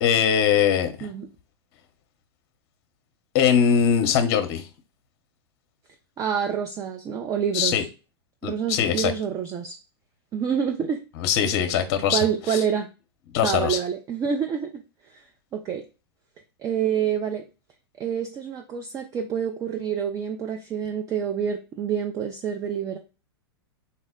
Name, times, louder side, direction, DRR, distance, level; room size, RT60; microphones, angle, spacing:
voice 1, 0.0-1.1 3.3-4.6 7.5-7.8 8.4-9.1 11.2-12.2 13.3-13.8, left 8 dB, 50° left, 8 dB, 0.7 m, -21 dB
voice 2, 6.2-7.9 8.4-9.7 10.3-11.0 12.1-12.9 13.4-14.8 15.1-15.2 15.5-15.8 16.6-17.4 18.0-23.0, right 8 dB, 25° right, 5 dB, 0.4 m, -27 dB
4.3 x 2.1 x 3.5 m, 0.32 s
hypercardioid pair, 105°, 13 cm